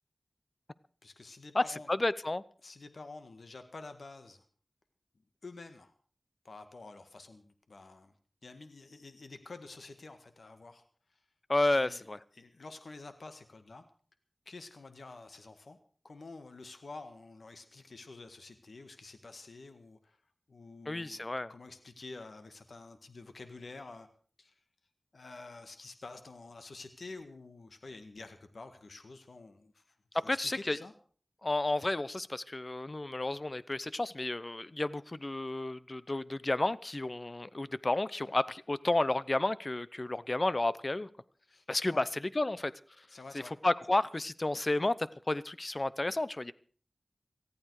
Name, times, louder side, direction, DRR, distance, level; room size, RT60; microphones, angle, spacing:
voice 1, 1.0-1.9 2.6-4.4 5.4-5.9 6.4-8.1 8.4-10.8 11.1-11.2 11.7-12.0 12.3-13.8 14.4-15.8 16.0-20.2 20.5-24.1 24.4-24.5 25.1-29.9 30.5-30.9 41.5-42.0 43.1-43.5, left 3 dB, 85° left, 8 dB, 1.7 m, -49 dB
voice 2, 1.5-2.4 11.5-12.2 20.9-21.5 30.3-30.8 31.4-41.1 41.7-42.7 43.6-46.5, left 2 dB, 45° left, 17 dB, 0.8 m, -31 dB
19.0 x 14.5 x 4.8 m, 0.44 s
wide cardioid pair, 45°, 0 cm